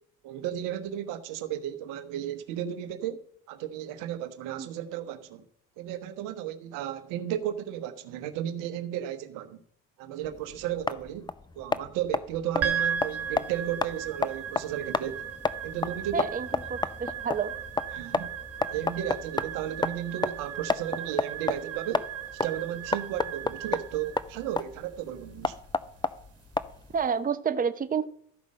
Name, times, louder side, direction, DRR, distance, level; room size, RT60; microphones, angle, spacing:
voice 1, 0.2-5.4 5.8-9.6 10.0-11.3 11.6-15.2 15.6-16.3 17.9-18.3 18.7-22.1 22.4-25.6, right 11 dB, 75° right, 1.1 m, -34 dB
sound 1, 10.2-27.0, left 3 dB, 15° left, 0.6 m, -32 dB
sound 2, 12.6-27.0, right 8 dB, 50° right, 1.9 m, -37 dB
voice 2, 16.1-17.5 26.9-28.0, right 6 dB, 25° right, 0.8 m, -29 dB
13.5 x 5.3 x 6.4 m
supercardioid pair, 65°, 32 cm